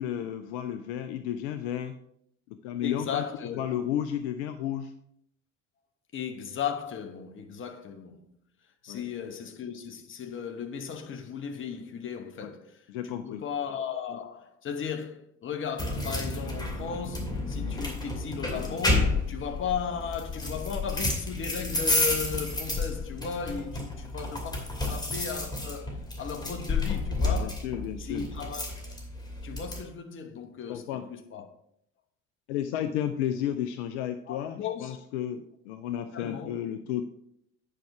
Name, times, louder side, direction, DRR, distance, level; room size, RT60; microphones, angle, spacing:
voice 1, 0.0-2.0 2.5-3.2 3.5-4.9 8.9-9.0 12.4-12.5 12.9-13.4 27.4-28.3 30.7-31.1 32.5-37.0, left 10 dB, 60° left, 0.6 m, -32 dB
voice 2, 2.8-3.6 6.1-8.3 8.8-12.8 13.0-25.9 26.2-27.6 28.0-29.0 29.4-31.5 34.3-35.0 36.1-36.5, left 7 dB, 35° left, 1.1 m, -36 dB
sound 1, 15.8-29.8, left 2 dB, 10° left, 2.5 m, -31 dB
9.2 x 5.4 x 4.8 m
figure-of-eight pair, 60°, 37 cm